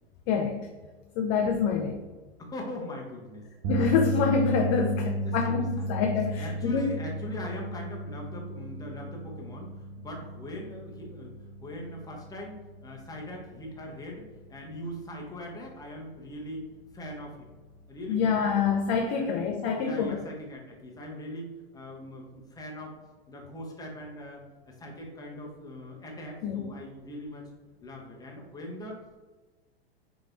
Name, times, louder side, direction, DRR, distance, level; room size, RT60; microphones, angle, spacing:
voice 1, 0.3-0.6 1.2-2.0 3.7-6.9 18.1-20.2 26.4-26.7, left 5 dB, 35° left, 3 dB, 0.4 m, -26 dB
voice 2, 2.4-3.5 4.9-5.5 5.8-5.9 6.3-11.3 11.6-16.7 16.9-17.5 17.9-18.4 19.1-19.3 19.7-22.9 23.3-27.4 27.8-29.2, left 1 dB, 10° left, -1 dB, 0.9 m, -41 dB
sound 1, 3.6-15.9 16.2-16.5 18.7-18.8, right 1 dB, 35° right, 0.5 m, -35 dB
4.5 x 3.2 x 2.6 m, 1.3 s
hypercardioid pair, 110°, 32 cm